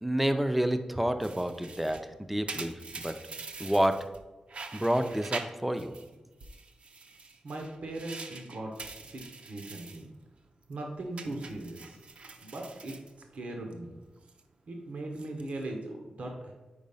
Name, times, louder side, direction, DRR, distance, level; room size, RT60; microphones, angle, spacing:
voice 1, 0.0-3.2 3.6-4.1 4.7-6.0, right 1 dB, 5° right, 9 dB, 0.4 m, -29 dB
sound 1, 1.2-4.2 4.5-6.1 6.4-10.1 10.4-10.7 11.2-13.7 14.0-14.4 15.0-15.6, right 4 dB, 60° right, 0.6 m, -44 dB
voice 2, 7.4-8.7 9.0-10.1 10.7-12.0 12.4-12.9 13.3-13.9 14.7-16.5, right 2 dB, 75° right, 2 dB, 1.0 m, -39 dB
5.1 x 4.7 x 5.4 m, 1.1 s
wide cardioid pair, 135°, 2 cm